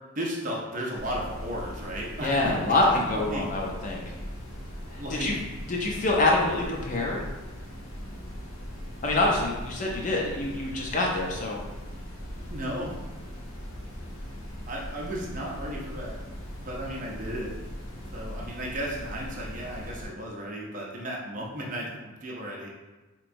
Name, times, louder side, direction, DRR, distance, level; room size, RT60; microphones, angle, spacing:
voice 1, 0.2-3.0 3.3-3.4 4.9-5.4 12.5-12.9 14.7-16.2 16.6-17.5 18.1-21.9 22.2-22.9, equal, 35° right, -3 dB, 0.6 m, -34 dB
sound 1, 0.9-20.1, equal, 85° left, 0.9 m, -39 dB
voice 2, 2.2-4.0 4.9-5.3 5.7-7.2 9.0-11.6, left 2 dB, 35° left, -2 dB, 0.5 m, -26 dB
4.4 x 2.9 x 2.6 m, 1.2 s
head